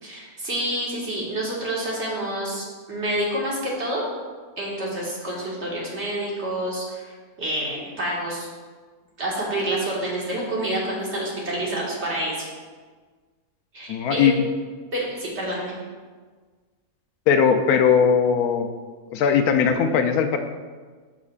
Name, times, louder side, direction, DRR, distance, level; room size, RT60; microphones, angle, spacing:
voice 1, 0.0-4.0 4.6-8.5 9.2-12.5 13.7-14.3 14.9-15.7, right 1 dB, 50° right, -4 dB, 2.0 m, -28 dB
voice 2, 13.9-14.4 17.3-18.7 19.1-20.4, left 7 dB, 90° left, 7 dB, 1.1 m, -19 dB
11.5 x 6.0 x 2.4 m, 1.5 s
omnidirectional pair, 1.5 m